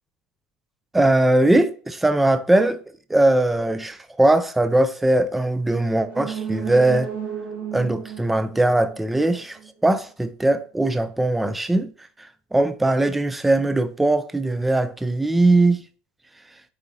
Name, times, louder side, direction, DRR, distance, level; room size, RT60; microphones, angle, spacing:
voice 1, 0.9-2.8 3.1-7.1 7.7-11.9 12.2-15.8, right 2 dB, 5° right, 0.3 m, -20 dB
sound 1, 6.0-9.7 10.0-10.1, right 8 dB, 50° right, 1.3 m, -34 dB
8.6 x 4.1 x 2.7 m
cardioid pair, 170°, 3 cm